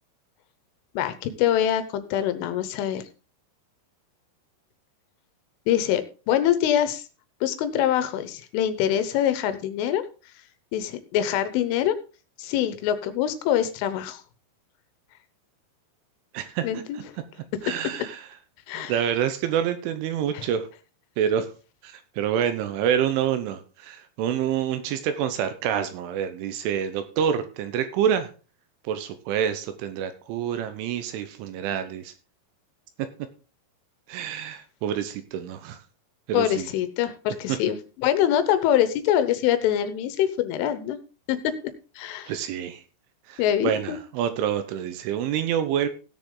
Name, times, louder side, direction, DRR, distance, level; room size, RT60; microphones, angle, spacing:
voice 1, 1.0-3.0 5.7-6.0 6.3-7.0 7.4-10.0 10.7-12.0 12.4-14.2 16.6-17.0 18.7-18.9 20.3-20.5 36.3-41.0 41.3-41.5 42.0-42.3 43.4-44.0, left 11 dB, 80° left, 11 dB, 3.3 m, -24 dB
voice 2, 16.3-16.7 16.9-17.0 17.6-18.2 18.7-20.7 21.2-21.5 21.8-28.3 28.8-32.1 34.1-35.8 36.3-36.7 37.5-37.6 42.3-42.8 43.3-45.9, right 9 dB, 75° right, 10 dB, 3.3 m, -27 dB
17.0 x 6.7 x 3.8 m, 0.34 s
omnidirectional pair, 5.9 m